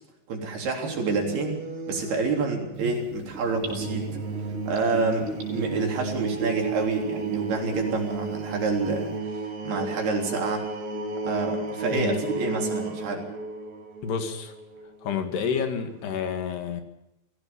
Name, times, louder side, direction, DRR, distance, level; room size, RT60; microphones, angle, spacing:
voice 1, 0.3-1.6 1.9-4.1 4.7-10.7 11.2-13.2, right 3 dB, 65° right, 1 dB, 5.5 m, -28 dB
sound 1, 0.8-16.2, right 4 dB, 45° right, 3.8 m, -33 dB
Gurgling / Bathtub (filling or washing), 2.8-7.9 8.2-8.3, right 2 dB, 90° right, 9.0 m, -37 dB
voice 2, 11.9-12.3 14.0-14.5 15.0-16.8, left 6 dB, 75° left, 6 dB, 4.0 m, -29 dB
23.5 x 16.5 x 7.0 m, 0.88 s
omnidirectional pair, 4.9 m